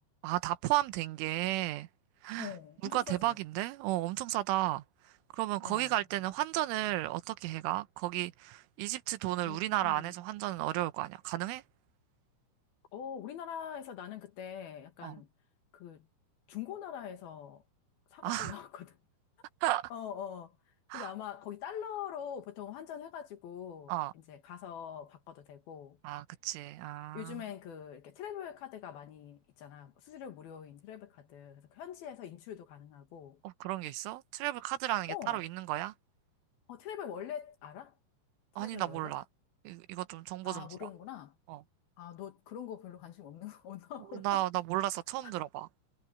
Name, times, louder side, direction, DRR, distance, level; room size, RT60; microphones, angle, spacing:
voice 1, 0.2-1.9 2.2-2.5 2.8-4.8 5.3-11.6 15.0-15.2 18.2-18.6 19.6-19.9 20.9-21.1 23.9-24.1 26.0-27.4 33.5-35.9 38.6-39.2 39.7-40.9 41.5-41.6 44.1-45.7, right 16 dB, 90° right, 3.5 m, -33 dB
voice 2, 2.4-3.4 5.6-6.0 9.4-10.2 12.9-15.3 15.7-16.1 16.5-17.6 18.1-19.0 19.9-20.6 20.9-26.0 27.1-33.4 35.1-35.5 36.7-38.0 38.6-39.1 40.4-41.4 42.0-44.5 45.2-45.3, left 9 dB, 60° left, 3.1 m, -44 dB
omnidirectional pair, 5.4 m